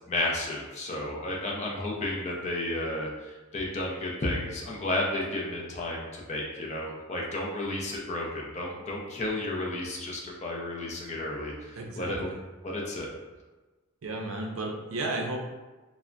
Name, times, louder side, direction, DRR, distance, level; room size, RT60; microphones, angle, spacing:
voice 1, 0.1-12.3 12.6-13.1, left 1 dB, 30° left, -2 dB, 0.5 m, -32 dB
voice 2, 11.7-12.4 14.0-15.4, right 2 dB, 70° right, 1 dB, 0.5 m, -33 dB
3.2 x 2.0 x 2.5 m, 1.2 s
head